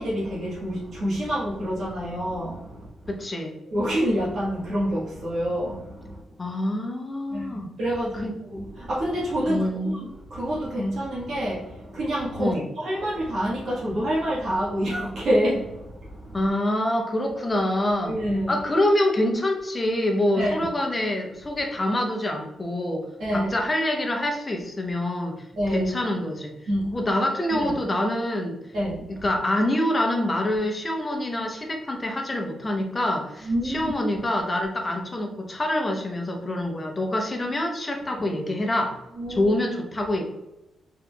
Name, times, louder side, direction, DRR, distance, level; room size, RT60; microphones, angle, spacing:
voice 1, 0.0-2.8 3.7-6.2 7.3-16.4 18.0-18.5 20.3-20.5 23.2-23.5 25.5-25.9 26.7-27.0 27.5-27.7 28.7-29.0 33.4-33.9 39.2-39.5, equal, 65° right, -7 dB, 1.4 m, -27 dB
voice 2, 3.1-3.5 6.4-7.7 8.1-8.3 9.5-10.0 12.4-12.7 16.3-18.2 18.5-23.0 23.3-25.4 25.7-26.5 26.9-28.6 29.1-39.0 39.3-40.2, left 1 dB, 20° left, 2 dB, 0.8 m, -26 dB
4.4 x 3.8 x 2.3 m, 0.96 s
cardioid pair, 125°, 0 cm